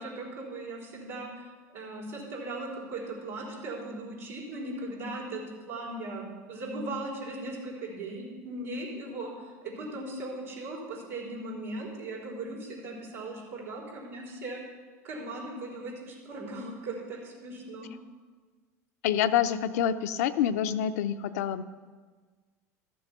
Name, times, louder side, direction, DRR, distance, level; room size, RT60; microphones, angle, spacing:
voice 1, 0.0-14.6 15.0-17.9, right 2 dB, 90° right, -6 dB, 4.1 m, -38 dB
voice 2, 19.0-21.6, left 10 dB, 75° left, 10 dB, 0.6 m, -27 dB
13.5 x 7.1 x 5.9 m, 1.5 s
hypercardioid pair, 90°, 8 cm